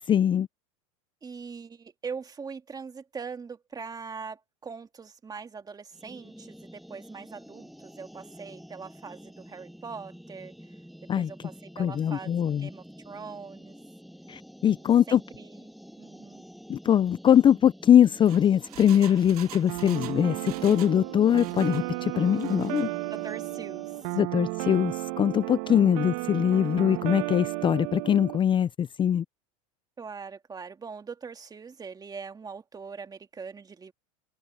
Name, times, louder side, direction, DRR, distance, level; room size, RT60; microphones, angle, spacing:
voice 1, 0.1-0.5 11.1-11.3 11.8-12.7 14.3-15.2 16.7-22.9 24.2-29.2, left 9 dB, 25° left, 0.5 m, -22 dB
voice 2, 1.2-10.7 11.2-12.3 12.6-13.8 14.6-15.7 16.0-16.4 23.1-24.2 25.7-26.1 30.0-33.9, right 5 dB, 20° right, 2.2 m, -42 dB
sound 1, 5.9-24.2, equal, ahead, 1.6 m, -48 dB
Engine, 18.0-21.0 21.2-21.9 22.3-22.9 23.2-23.3, right 15 dB, 85° right, 0.8 m, -46 dB
sound 2, 19.7-28.4, right 23 dB, 70° right, 1.6 m, -33 dB
supercardioid pair, 105°, 19 cm